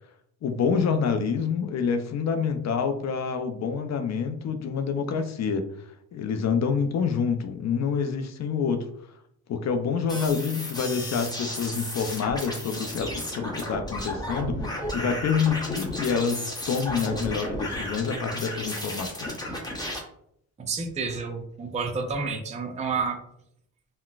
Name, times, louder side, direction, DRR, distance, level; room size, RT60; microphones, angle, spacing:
voice 1, 0.4-5.7 6.1-8.9 9.5-19.4, left 6 dB, 45° left, 7 dB, 0.5 m, -27 dB
sound 1, 10.1-20.0, left 1 dB, 10° left, 0.9 m, -33 dB
voice 2, 20.6-23.2, right 4 dB, 20° right, 4 dB, 0.5 m, -30 dB
3.9 x 2.1 x 2.3 m, 0.71 s
cardioid pair, 80°, 37 cm